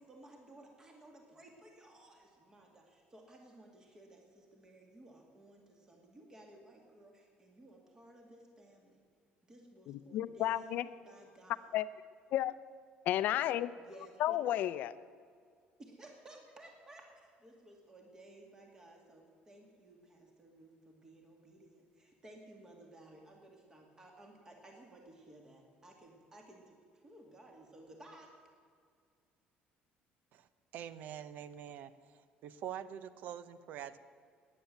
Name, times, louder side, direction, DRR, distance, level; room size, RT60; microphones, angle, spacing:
voice 1, 0.0-9.0 9.4-11.7 13.8-14.4 15.8-28.3, right 1 dB, 20° right, 1 dB, 2.2 m, -57 dB
voice 2, 9.9-10.8 11.7-11.9 12.3-12.5 13.1-13.7 14.2-14.9, left 13 dB, 60° left, 14 dB, 0.6 m, -32 dB
voice 3, 30.7-31.9 32.4-34.0, right 10 dB, 60° right, 14 dB, 0.7 m, -44 dB
14.0 x 10.0 x 9.3 m, 2.1 s
cardioid pair, 150°, 3 cm